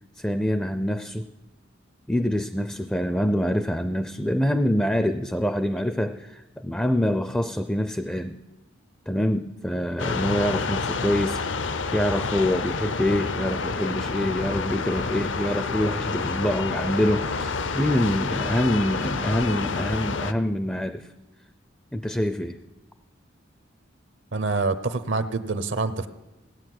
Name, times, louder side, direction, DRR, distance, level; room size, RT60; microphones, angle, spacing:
voice 1, 0.2-1.3 2.1-8.4 9.1-11.4 11.9-21.1 21.9-22.6, equal, 5° left, 10 dB, 0.4 m, -25 dB
sound 1, 10.0-20.3, left 4 dB, 65° left, 0.7 m, -29 dB
voice 2, 24.3-26.1, right 3 dB, 65° right, 11 dB, 0.8 m, -26 dB
17.0 x 9.1 x 7.8 m, 1.0 s
head